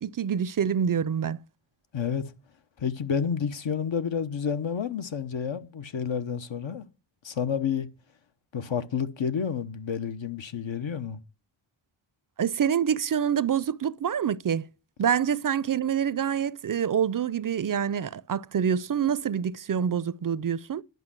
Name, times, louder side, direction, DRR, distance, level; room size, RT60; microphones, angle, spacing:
voice 1, 0.0-1.4 12.4-14.7 15.0-20.8, right 8 dB, 45° right, 0.5 m, -26 dB
voice 2, 1.9-2.2 2.8-6.9 7.2-7.9 8.5-11.2, left 7 dB, 65° left, 1.0 m, -30 dB
11.0 x 5.4 x 7.5 m
cardioid pair, 40°, 49 cm